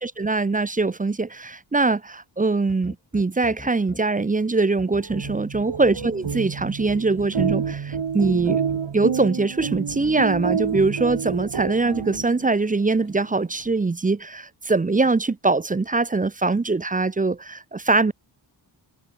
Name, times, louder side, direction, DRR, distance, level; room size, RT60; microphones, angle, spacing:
voice 1, 0.0-8.6 8.9-18.1, right 3 dB, 20° right, 0.5 m, -22 dB
sound 1, 2.7-4.0 4.8-8.8 9.6-11.2 12.0-12.2, left 2 dB, 20° left, 2.7 m, -42 dB
upright piano damp pedal, 5.0-12.6, right 7 dB, 75° right, 3.8 m, -28 dB
wide cardioid pair, 125°, 45 cm